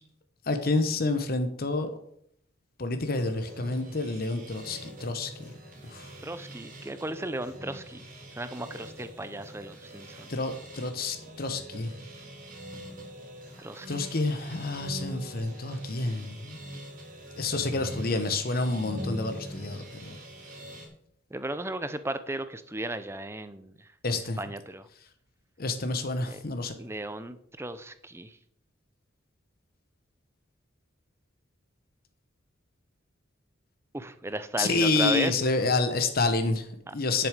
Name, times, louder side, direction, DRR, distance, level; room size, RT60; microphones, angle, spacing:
voice 1, 0.5-1.9 2.8-5.5 5.8-6.1 10.3-11.9 13.9-16.6 17.4-20.2 24.0-24.4 25.6-26.7 34.6-37.3, left 3 dB, 50° left, 8 dB, 1.0 m, -29 dB
sound 1, 3.0-20.9, equal, 40° right, 2.9 m, -43 dB
voice 2, 6.2-8.0 8.4-10.3 13.6-14.0 21.3-24.9 26.3-26.4 26.8-28.4 33.9-35.4 36.9-37.0, right 2 dB, 15° right, 12 dB, 0.6 m, -35 dB
10.5 x 6.9 x 5.0 m, 0.69 s
head